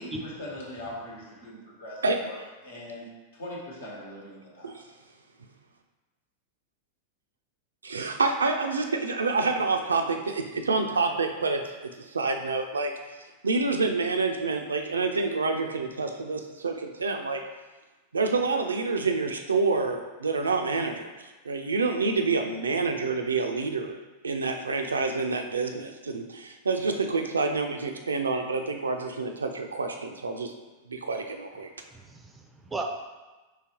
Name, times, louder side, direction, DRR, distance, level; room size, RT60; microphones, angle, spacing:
voice 1, 0.0-2.4 2.6-4.8, left 1 dB, 65° left, -3 dB, 1.1 m, -41 dB
voice 2, 7.8-13.2 13.4-17.4 18.1-24.0 24.2-30.5 30.9-31.7, right 3 dB, 75° right, 5 dB, 0.4 m, -28 dB
voice 3, 31.9-32.8, right 2 dB, 10° right, 2 dB, 0.5 m, -36 dB
4.7 x 3.4 x 2.8 m, 1.2 s
figure-of-eight pair, 90°, 0 cm